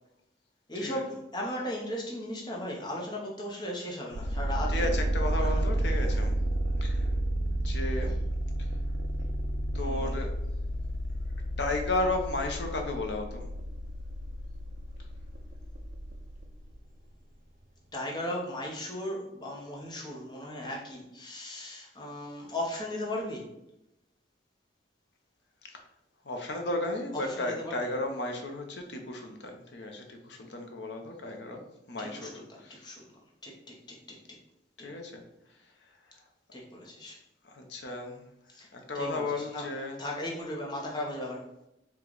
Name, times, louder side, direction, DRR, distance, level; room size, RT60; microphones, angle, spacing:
voice 1, 0.7-4.9 5.4-5.5 6.1-6.2 9.7-10.2 17.9-23.4 27.2-27.9 32.0-33.1 33.4-34.2 34.8-34.9 36.5-37.2 38.5-38.7 38.9-39.7 40.0-41.5, left 1 dB, 25° left, -2 dB, 0.8 m, -37 dB
sound 1, 4.1-16.8, right 1 dB, 45° right, 0.4 m, -31 dB
voice 2, 4.7-6.3 6.8-7.1 7.5-8.2 9.7-10.3 11.6-13.4 25.6-25.8 26.2-31.6 31.9-32.3 32.6-32.9 34.8-35.2 37.4-38.3 38.7-40.0, left 2 dB, 65° left, 3 dB, 0.7 m, -34 dB
4.7 x 2.3 x 3.9 m, 0.87 s
head